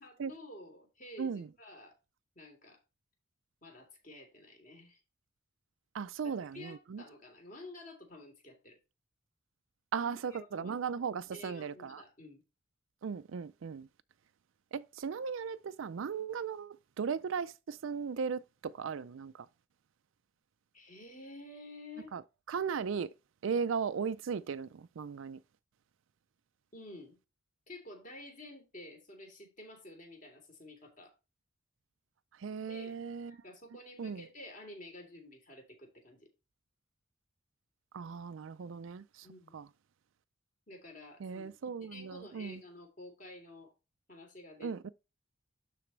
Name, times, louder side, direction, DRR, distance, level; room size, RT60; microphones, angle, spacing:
voice 1, 0.0-1.9 2.3-2.8 3.6-5.0 6.2-8.8 10.0-10.8 11.3-12.4 20.7-22.1 26.7-27.2 27.7-31.1 32.7-32.9 33.3-36.3 39.2-39.6 40.7-41.5 41.8-43.7 44.1-44.9, left 1 dB, 40° left, 3.1 m, -51 dB
voice 2, 5.9-7.0 9.9-12.0 13.0-13.9 14.7-19.3 22.1-22.2 22.5-23.1 23.4-25.4 32.4-33.3 34.0-34.2 37.9-39.0 39.5-39.6 41.2-42.6 44.6-44.9, right 6 dB, 70° right, 0.4 m, -37 dB
12.0 x 4.2 x 3.2 m
head